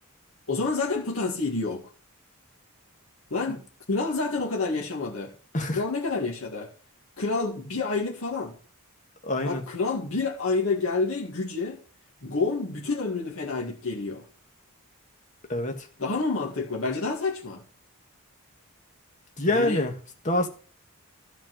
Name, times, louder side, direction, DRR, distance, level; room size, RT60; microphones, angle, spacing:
voice 1, 0.5-1.8 3.3-5.3 5.7-6.7 7.2-8.5 9.5-11.8 12.2-14.3 16.0-17.6 19.5-19.9, left 3 dB, 65° left, 2.1 m, -28 dB
voice 2, 9.2-9.6 15.5-15.9 19.4-19.9 20.2-20.5, left 1 dB, 35° left, 1.8 m, -26 dB
12.5 x 4.6 x 7.7 m
head